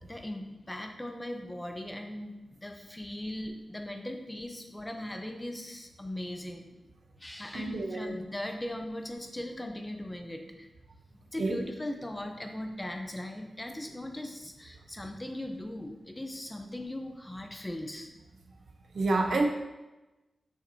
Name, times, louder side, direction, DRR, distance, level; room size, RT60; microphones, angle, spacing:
voice 1, 0.0-6.6 7.2-10.7 11.3-18.1, left 1 dB, 10° left, 4 dB, 0.6 m, -39 dB
voice 2, 7.5-8.1 11.4-11.6 18.9-19.5, right 3 dB, 65° right, 3 dB, 0.7 m, -28 dB
7.1 x 5.8 x 2.7 m, 1.1 s
wide cardioid pair, 155°, 0 cm